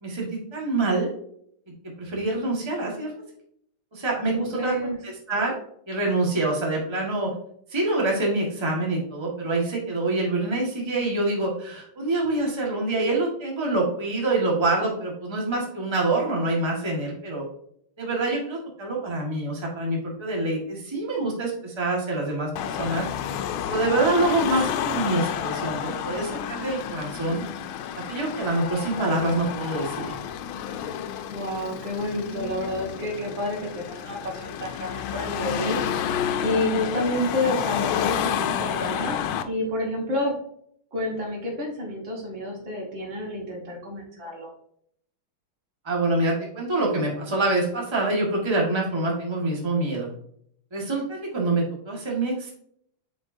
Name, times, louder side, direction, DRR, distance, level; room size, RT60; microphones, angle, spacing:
voice 1, 0.0-1.1 1.7-3.1 3.9-5.5 5.9-7.3 7.7-17.4 18.0-23.1 23.7-27.4 28.1-30.1 45.8-50.1 50.7-52.5, right 2 dB, 15° right, -3 dB, 1.5 m, -26 dB
voice 2, 4.2-5.0 31.3-35.8 36.4-39.2 39.5-40.4 40.9-44.5, left 1 dB, 65° right, -1 dB, 2.4 m, -29 dB
Car passing by / Traffic noise roadway noise / Engine, 22.6-39.4, left 9 dB, 85° left, 1.4 m, -30 dB
7.8 x 4.7 x 2.7 m, 0.68 s
omnidirectional pair, 2.2 m